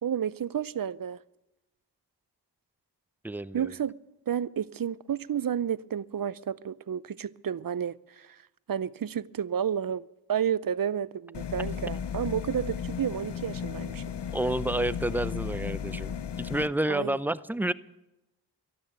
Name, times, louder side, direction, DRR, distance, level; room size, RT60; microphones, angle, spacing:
voice 1, 0.0-1.2 3.5-4.0 4.3-8.4 8.7-14.0 16.9-17.2, right 8 dB, 55° right, 0.6 m, -31 dB
voice 2, 3.2-3.7 14.3-16.1 16.4-17.7, right 1 dB, 5° right, 0.6 m, -29 dB
sound 1, 11.3-16.7, left 8 dB, 80° left, 0.7 m, -35 dB
12.0 x 12.0 x 9.3 m
cardioid pair, 40°, 40 cm